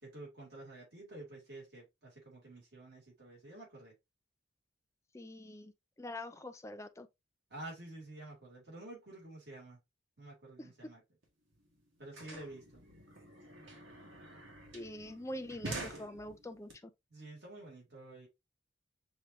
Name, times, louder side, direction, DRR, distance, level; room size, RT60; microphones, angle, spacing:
voice 1, 0.0-3.9 7.5-9.8 10.2-11.0 12.0-12.8 17.1-18.3, right 2 dB, 55° right, 3.1 m, -50 dB
voice 2, 5.1-5.7 6.0-7.1 12.3-12.4 14.7-16.9, left 1 dB, 15° left, 0.5 m, -44 dB
sound 1, 11.2-11.3 11.5-16.7, right 2 dB, 85° right, 2.0 m, -47 dB
6.1 x 3.2 x 2.7 m
head